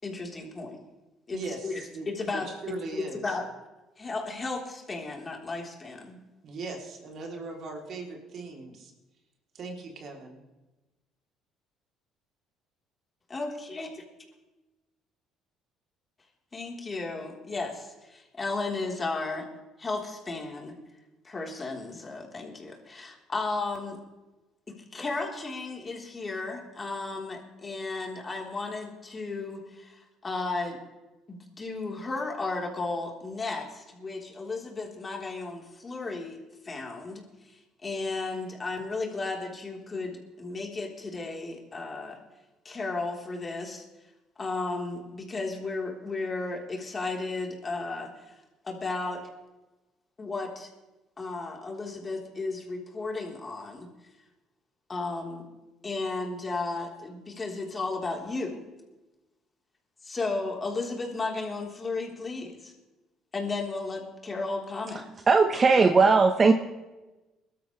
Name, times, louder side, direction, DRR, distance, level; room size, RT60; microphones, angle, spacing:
voice 1, 0.0-0.8 1.3-1.8 2.1-2.5 2.9-3.4 4.0-6.2 13.3-13.9 16.5-19.5 19.8-20.7 21.2-24.0 24.7-30.8 31.3-36.4 36.6-42.2 42.6-43.8 44.4-48.3 48.6-49.2 50.2-50.7 51.2-53.9 54.9-55.4 55.8-58.6 60.0-62.7 63.3-65.0, left 3 dB, 30° left, 0 dB, 3.9 m, -34 dB
voice 2, 1.3-2.1 2.3-3.4 6.4-8.9 9.5-10.4, right 3 dB, 55° right, 1 dB, 3.3 m, -39 dB
voice 3, 65.3-66.5, right 4 dB, 35° right, 6 dB, 1.1 m, -18 dB
22.5 x 13.0 x 3.3 m, 1.1 s
hypercardioid pair, 60°, 0 cm